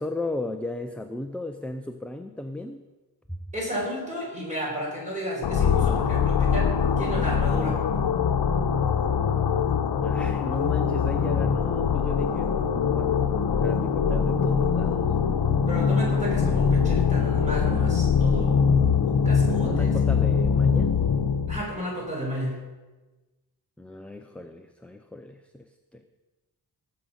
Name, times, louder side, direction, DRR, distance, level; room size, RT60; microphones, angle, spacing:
voice 1, 0.0-2.8 3.3-3.4 10.0-13.3 13.6-15.1 19.4-21.0 23.8-26.0, left 1 dB, 5° left, 6 dB, 0.4 m, -35 dB
voice 2, 3.5-6.7 7.0-7.8 15.7-18.8 19.1-19.9 21.5-22.6, equal, 20° right, -3 dB, 4.5 m, -32 dB
sound 1, 5.4-21.6, left 6 dB, 75° left, 0.9 m, -23 dB
18.0 x 7.6 x 5.6 m, 1.2 s
wide cardioid pair, 175°, 39 cm